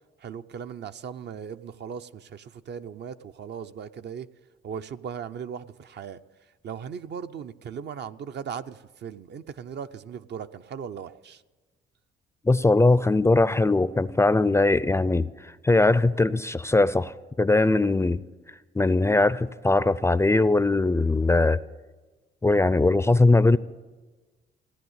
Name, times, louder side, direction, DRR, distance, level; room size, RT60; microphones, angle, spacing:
voice 1, 0.2-4.3 4.6-6.2 6.6-11.4, right 7 dB, 60° right, 0.6 m, -38 dB
voice 2, 12.4-17.1 17.4-18.2 18.8-21.6 22.4-23.6, left 2 dB, 15° left, 0.4 m, -20 dB
16.5 x 10.0 x 8.1 m
cardioid pair, 90°, 20 cm